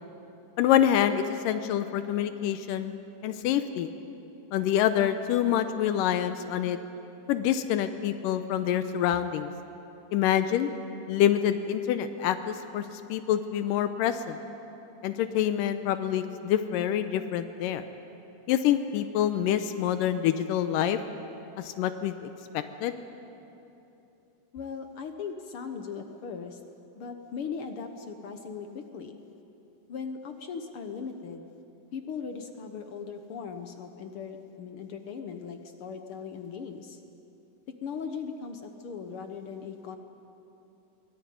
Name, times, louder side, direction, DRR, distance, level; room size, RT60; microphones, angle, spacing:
voice 1, 0.6-2.9 3.2-3.9 4.5-6.8 7.3-9.5 10.1-10.7 11.1-14.4 15.0-17.8 18.5-21.0 21.6-22.3 22.8-22.9, left 10 dB, 90° left, 10 dB, 2.4 m, -26 dB
voice 2, 24.5-26.6 26.9-29.2 29.9-31.5 31.9-37.0 37.7-40.0, left 6 dB, 65° left, 6 dB, 1.4 m, -38 dB
24.0 x 18.5 x 9.4 m, 3.0 s
omnidirectional pair, 3.8 m